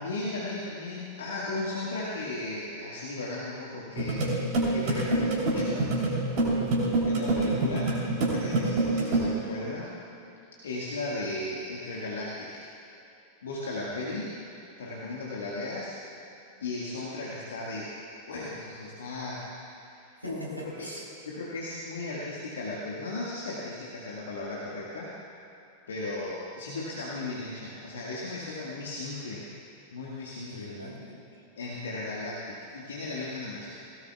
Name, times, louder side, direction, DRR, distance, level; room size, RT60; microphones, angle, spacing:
voice 1, 0.0-5.8 7.1-9.9 10.6-12.7 13.4-14.3 14.8-15.9 16.6-17.9 18.3-19.8 20.3-20.4 20.8-20.9 21.3-25.1 25.9-29.5 29.9-30.7 31.6-33.7, left 2 dB, 65° left, -5 dB, 1.7 m, -36 dB
sound 1, 4.0-9.2, right 2 dB, 45° right, 3.3 m, -26 dB
voice 2, 6.5-7.1 13.9-14.2 20.1-21.0 30.4-31.4, equal, 90° left, -4 dB, 3.5 m, -42 dB
18.5 x 17.5 x 2.4 m, 2.8 s
figure-of-eight pair, 90°, 0 cm